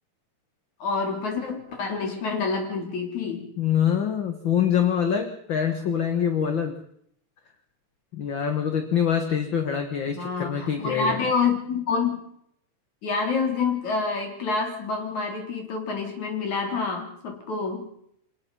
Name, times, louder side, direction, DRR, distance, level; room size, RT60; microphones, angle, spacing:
voice 1, 0.8-3.5 10.1-12.2 13.0-17.9, left 4 dB, 65° left, 3 dB, 4.7 m, -27 dB
voice 2, 3.6-6.8 8.1-11.2, left 8 dB, 45° left, 7 dB, 1.8 m, -25 dB
24.5 x 19.5 x 5.4 m, 0.70 s
omnidirectional pair, 3.6 m